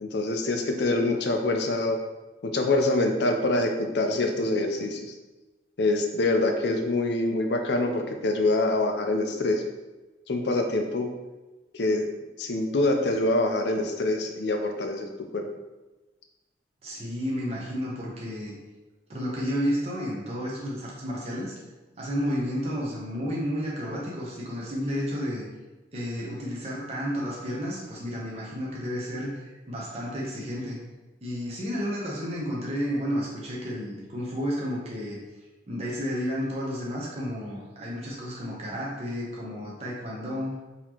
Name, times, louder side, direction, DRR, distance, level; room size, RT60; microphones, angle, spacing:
voice 1, 0.0-2.0 2.4-5.1 5.8-9.6 10.3-11.1 11.7-12.1 12.4-15.1 15.3-15.5, left 2 dB, 70° left, 4 dB, 0.5 m, -25 dB
voice 2, 16.8-18.5 19.1-21.5 22.0-25.4 25.9-30.8 31.2-35.2 35.7-40.6, equal, 35° right, -5 dB, 0.8 m, -31 dB
4.1 x 2.9 x 2.9 m, 1.1 s
head